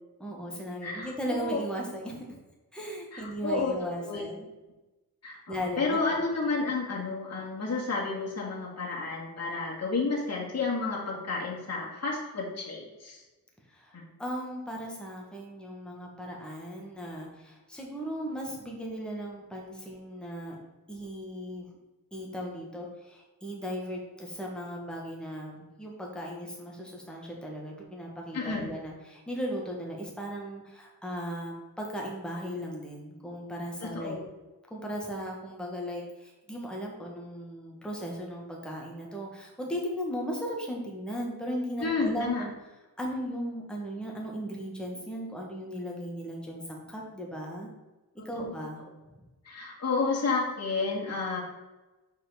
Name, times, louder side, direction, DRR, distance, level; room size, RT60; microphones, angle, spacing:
voice 1, 0.2-2.3 2.7-4.5 5.5-6.2 13.7-20.6 20.9-21.7 22.1-34.2 34.7-42.5 43.0-47.7 48.2-48.8, equal, ahead, -2 dB, 1.8 m, -37 dB
voice 2, 0.8-1.6 3.1-4.2 5.2-13.2 28.3-28.7 33.8-34.2 41.8-42.4 48.4-48.5 49.4-51.4, left 3 dB, 45° left, -4 dB, 2.2 m, -31 dB
5.6 x 4.8 x 5.1 m, 1.1 s
cardioid pair, 75°, 37 cm